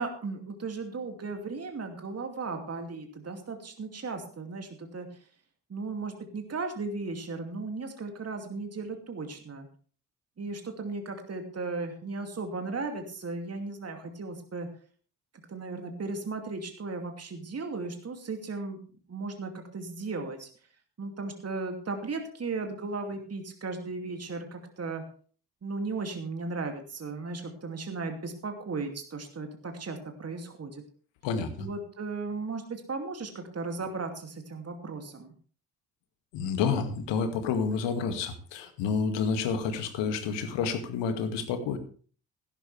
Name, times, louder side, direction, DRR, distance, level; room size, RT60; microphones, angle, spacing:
voice 1, 0.0-5.1 5.7-9.7 10.4-14.7 15.5-18.8 19.1-20.5 21.0-25.0 25.6-30.8 31.6-35.3, right 3 dB, 30° right, 5 dB, 2.6 m, -36 dB
voice 2, 31.2-31.7 36.3-41.8, left 5 dB, 60° left, 8 dB, 2.3 m, -29 dB
16.0 x 12.0 x 3.4 m, 0.42 s
figure-of-eight pair, 45°, 48 cm